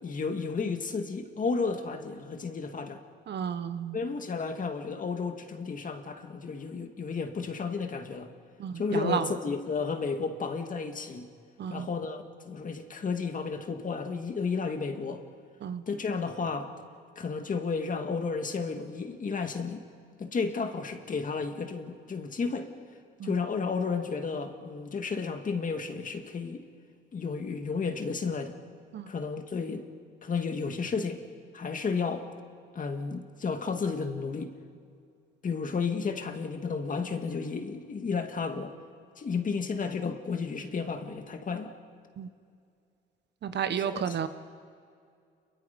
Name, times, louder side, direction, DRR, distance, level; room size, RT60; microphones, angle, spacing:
voice 1, 0.0-3.0 3.9-8.3 8.7-11.3 11.7-15.2 15.9-16.7 17.2-19.8 20.2-22.7 23.2-26.6 27.1-28.6 29.1-29.9 30.2-31.2 31.5-32.3 32.7-34.5 35.4-38.7 39.2-41.7 43.9-44.0, left 5 dB, 40° left, 6 dB, 2.1 m, -32 dB
voice 2, 3.3-4.0 8.6-9.3 11.6-11.9 15.6-15.8 23.2-23.3 28.9-29.1 42.2-42.3 43.4-44.3, right 8 dB, 60° right, 11 dB, 1.2 m, -32 dB
29.0 x 23.0 x 5.3 m, 2.3 s
cardioid pair, 90°, 20 cm